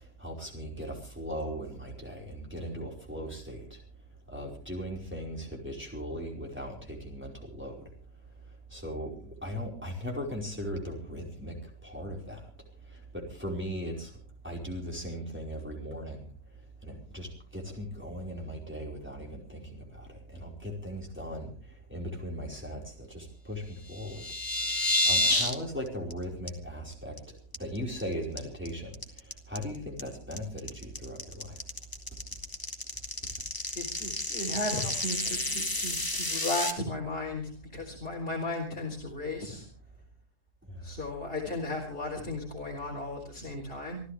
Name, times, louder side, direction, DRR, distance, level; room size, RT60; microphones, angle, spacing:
voice 1, 0.2-3.6 4.3-7.7 8.7-9.1 9.4-11.5 11.8-12.4 13.1-14.1 14.4-16.2 16.8-17.3 17.5-19.8 20.3-21.5 21.9-22.8 23.1-23.6 23.9-24.3 25.1-27.1 27.6-28.9 29.5-31.6, equal, 5° right, -2 dB, 5.0 m, -38 dB
sound 1, 23.9-25.5 25.9-26.1 26.5-26.6 26.9-27.2 27.5-28.0 28.4-36.7, left 1 dB, 15° left, 2.1 m, -30 dB
voice 2, 33.7-39.7 40.8-44.0, left 2 dB, 35° left, -2 dB, 4.2 m, -35 dB
27.0 x 14.0 x 3.5 m, 0.40 s
omnidirectional pair, 1.7 m